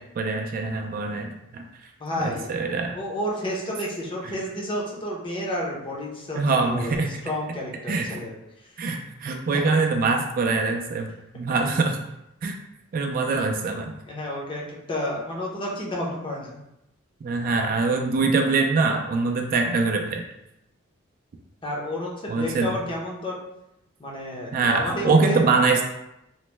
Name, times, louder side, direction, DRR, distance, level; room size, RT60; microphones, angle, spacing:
voice 1, 0.2-1.6 2.2-2.9 6.3-7.1 7.9-8.2 8.8-11.1 11.3-12.0 12.4-12.6 12.9-14.0 17.2-20.2 22.3-22.7 24.5-25.8, right 3 dB, 45° right, 4 dB, 0.3 m, -23 dB
voice 2, 2.0-2.5 2.9-8.9 9.5-9.8 14.1-16.6 21.6-23.4 24.0-25.4, equal, 25° left, -3 dB, 0.6 m, -31 dB
2.9 x 2.1 x 3.2 m, 0.86 s
head